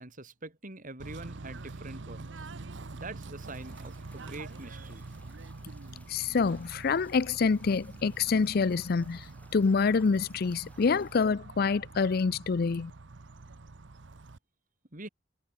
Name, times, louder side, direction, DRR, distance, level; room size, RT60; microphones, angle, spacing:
voice 1, 0.0-2.5 2.9-5.1 14.9-15.1, right 2 dB, 45° right, 4.4 m, -44 dB
Bird / Train, 1.0-14.4, right 3 dB, 85° right, 0.9 m, -45 dB
sound 1, 3.4-11.3, left 2 dB, 10° left, 5.0 m, -61 dB
voice 2, 6.1-12.9, left 5 dB, 55° left, 0.5 m, -27 dB
head